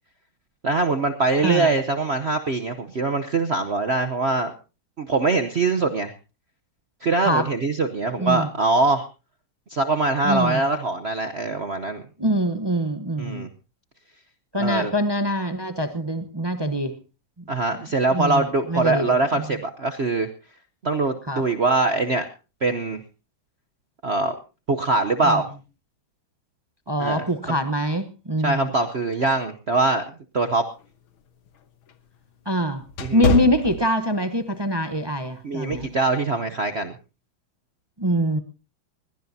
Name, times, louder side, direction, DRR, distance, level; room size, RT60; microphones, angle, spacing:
voice 1, 0.6-4.5 5.0-6.1 7.0-9.0 9.7-12.0 13.2-13.5 14.5-14.9 17.5-20.3 20.8-22.2 22.6-23.0 24.0-24.3 24.7-25.5 27.0-27.2 28.4-30.0 30.3-30.6 33.0-33.2 35.4-36.9, right 3 dB, 50° right, 7 dB, 0.8 m, -23 dB
voice 2, 1.4-1.7 7.2-7.5 8.2-8.5 10.2-10.6 12.2-13.5 14.5-16.9 18.1-19.5 21.3-21.4 25.2-25.4 26.9-28.7 32.5-32.8 33.1-35.9 38.0-38.4, equal, 30° right, 9 dB, 0.4 m, -24 dB
sound 1, 30.7-34.4 34.9-35.1 35.7-36.0, left 3 dB, 85° left, 2.1 m, -27 dB
21.0 x 18.0 x 2.7 m, 0.32 s
omnidirectional pair, 2.2 m